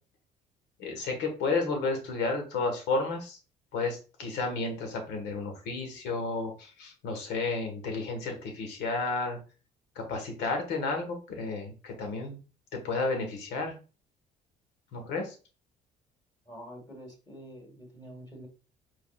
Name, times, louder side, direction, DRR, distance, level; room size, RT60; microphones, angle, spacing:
voice 1, 0.8-3.4 3.7-9.4 9.9-12.4 12.8-13.7 14.9-15.3, left 3 dB, 85° left, 4 dB, 1.6 m, -32 dB
voice 2, 16.5-18.5, equal, 25° left, -1 dB, 2.1 m, -46 dB
4.9 x 4.1 x 2.5 m, 0.34 s
cardioid pair, 110°, 17 cm